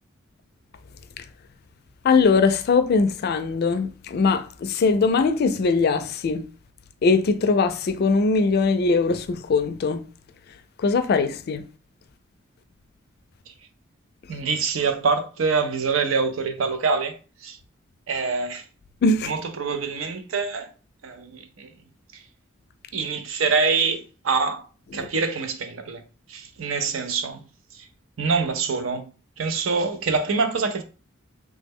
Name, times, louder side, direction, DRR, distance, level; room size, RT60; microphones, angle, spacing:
voice 1, 2.0-6.5 7.0-10.1 10.5-11.6 14.3-14.4 19.0-19.3 24.9-25.1, left 4 dB, 55° left, 0.4 m, -21 dB
voice 2, 14.3-17.2 17.4-17.6 18.1-18.6 19.3-20.7 21.0-21.7 22.1-22.2 22.9-24.7 24.9-26.0 26.3-27.4 27.7-27.9 28.2-29.1 29.4-30.8, right 4 dB, 80° right, 0.5 m, -25 dB
3.1 x 2.1 x 3.5 m
head